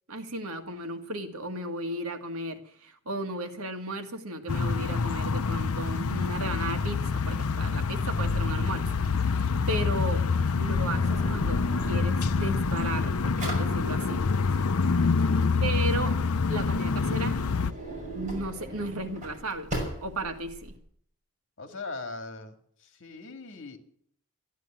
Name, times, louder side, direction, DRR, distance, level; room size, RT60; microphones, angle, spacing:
voice 1, 0.1-10.3 10.6-14.3 15.6-16.1 16.5-17.4 18.1-19.7 20.0-20.8, right 1 dB, 80° right, 6 dB, 1.9 m, -35 dB
sound 1, 4.5-17.7, left 4 dB, 80° left, 0.7 m, -26 dB
Drawer open or close, 10.8-20.8, right 1 dB, 35° right, 6.1 m, -40 dB
voice 2, 15.0-15.4 21.6-22.5 22.8-23.8, left 3 dB, 60° left, 6 dB, 2.3 m, -40 dB
13.5 x 11.5 x 8.8 m, 0.64 s
head